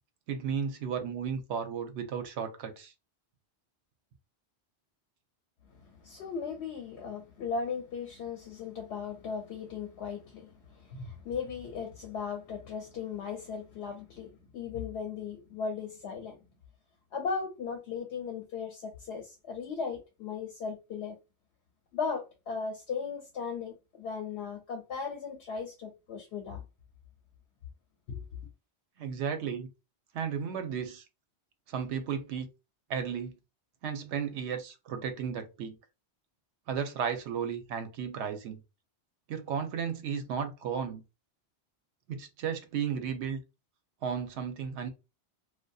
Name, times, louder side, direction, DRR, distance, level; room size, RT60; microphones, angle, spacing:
voice 1, 0.3-2.9 29.0-29.7 30.1-31.0 31.7-32.5 32.9-33.4 33.8-35.8 36.7-38.6 39.3-41.0 42.1-43.4 44.0-44.9, right 7 dB, 85° right, 0.9 m, -34 dB
voice 2, 5.7-16.4 17.1-21.2 21.9-26.6 28.1-28.2, left 5 dB, 75° left, 0.8 m, -37 dB
2.6 x 2.2 x 2.2 m
omnidirectional pair, 1.1 m